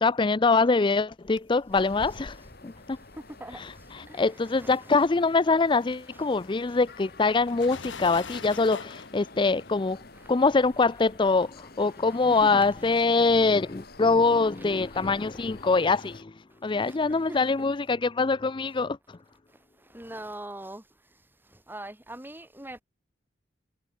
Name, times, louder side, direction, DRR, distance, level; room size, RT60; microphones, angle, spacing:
voice 1, 0.0-2.4 2.6-3.0 3.5-10.0 10.3-16.3 16.6-19.2, left 3 dB, 25° left, 0.5 m, -24 dB
sound 1, 1.0-4.6 4.9-15.6, left 4 dB, 80° left, 1.5 m, -47 dB
sound 2, 1.7-16.2, left 2 dB, 55° left, 7.6 m, -49 dB
voice 2, 3.2-3.6 4.1-4.9 6.1-6.2 6.7-6.8 10.1-10.3 12.3-12.6 14.9-15.1 16.8-17.4 19.9-20.8 21.7-22.8, right 1 dB, 10° right, 4.4 m, -42 dB
head